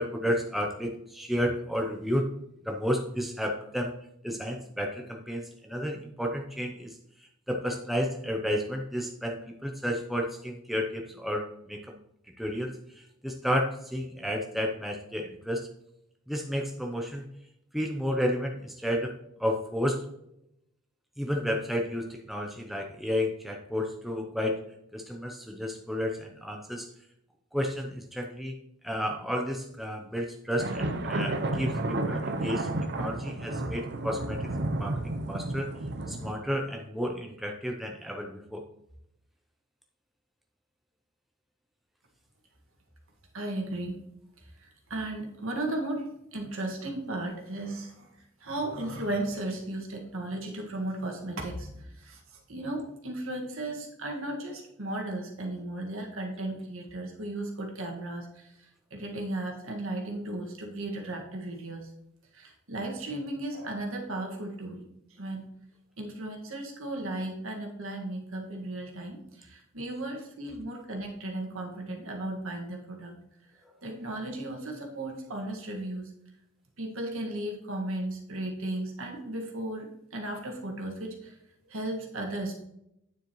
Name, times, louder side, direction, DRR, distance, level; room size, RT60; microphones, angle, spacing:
voice 1, 0.0-2.3 2.6-3.9 4.2-11.9 12.4-15.7 16.3-17.2 17.7-19.1 19.4-20.0 21.2-24.6 24.9-26.9 27.5-28.5 28.8-32.7 32.9-34.5 34.8-35.7 36.1-38.6, equal, ahead, 1 dB, 0.6 m, -32 dB
sound 1, 30.6-36.3, right 2 dB, 50° right, 0.6 m, -31 dB
voice 2, 43.3-44.0 44.6-46.0 46.3-48.1 48.4-61.9 62.3-64.8 65.2-65.4 66.0-73.1 73.8-76.1 76.8-81.4 81.7-82.5, right 1 dB, 70° right, 1 dB, 1.8 m, -35 dB
9.2 x 7.3 x 3.1 m, 0.81 s
head